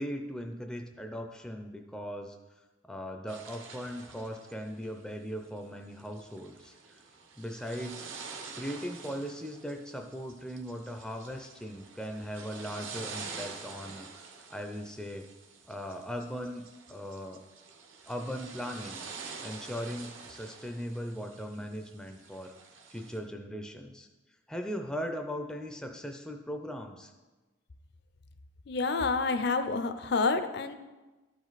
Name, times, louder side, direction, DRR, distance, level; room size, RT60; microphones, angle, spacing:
voice 1, 0.0-2.4 2.8-7.0 7.4-8.1 8.6-14.2 14.5-15.3 15.7-17.4 18.1-19.0 19.4-22.6 22.9-24.1 24.5-27.1, equal, 5° left, 3 dB, 0.4 m, -39 dB
sound 1, 3.3-23.2, right 5 dB, 75° right, 1.0 m, -47 dB
voice 2, 28.7-30.7, left 4 dB, 55° left, 10 dB, 0.5 m, -28 dB
12.5 x 5.1 x 4.0 m, 1.2 s
head